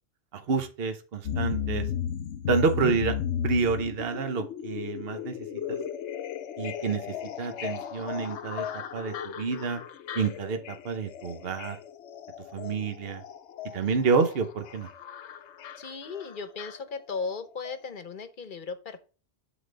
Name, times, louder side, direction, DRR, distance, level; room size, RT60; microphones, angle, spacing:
voice 1, 0.3-1.8 2.5-3.1 3.4-5.3 5.7-5.8 6.6-8.6 8.9-9.8 10.1-11.8 12.5-13.2 13.7-14.9, right 5 dB, 60° right, 7 dB, 1.1 m, -28 dB
sound 1, 1.2-17.4 17.6-17.7, left 9 dB, 80° left, 0.9 m, -35 dB
voice 2, 15.8-19.0, left 4 dB, 50° left, 10 dB, 1.0 m, -36 dB
11.5 x 4.0 x 3.3 m, 0.36 s
omnidirectional pair, 1.2 m